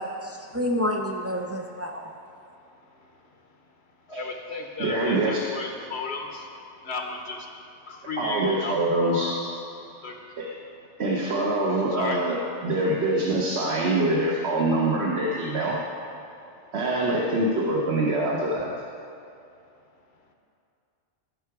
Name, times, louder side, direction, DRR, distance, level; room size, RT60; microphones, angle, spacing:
voice 1, 0.0-2.1, equal, 25° right, 1 dB, 0.3 m, -29 dB
voice 2, 2.6-3.5 4.1-9.4 9.8-10.4 11.9-12.2 16.3-16.7, left 3 dB, 60° left, 3 dB, 1.1 m, -36 dB
voice 3, 4.8-5.4 8.2-9.3 10.4-10.5 11.0-15.8 16.7-18.7, right 2 dB, 60° right, -2 dB, 1.2 m, -24 dB
13.0 x 5.9 x 4.7 m, 2.6 s
omnidirectional pair, 1.2 m